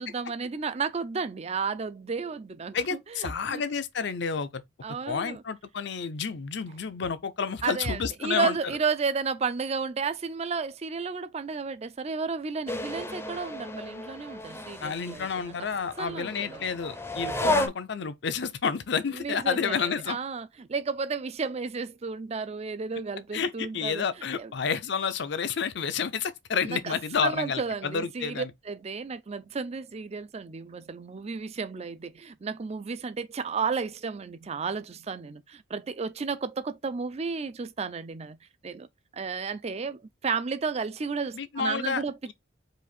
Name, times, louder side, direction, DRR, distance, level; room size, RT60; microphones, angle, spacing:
voice 1, 0.0-3.6 4.8-5.4 7.6-15.5 16.0-16.6 17.4-17.5 19.1-24.0 24.4-24.5 26.6-26.9 27.2-38.4 38.6-38.9 39.1-42.2, right 5 dB, 35° right, 0.4 m, -33 dB
voice 2, 2.7-4.6 5.1-8.6 14.8-20.2 23.3-28.5 41.3-42.0, left 6 dB, 65° left, 0.6 m, -30 dB
sound 1, 12.7-17.7, left 1 dB, 15° left, 0.6 m, -33 dB
4.9 x 2.6 x 4.2 m
head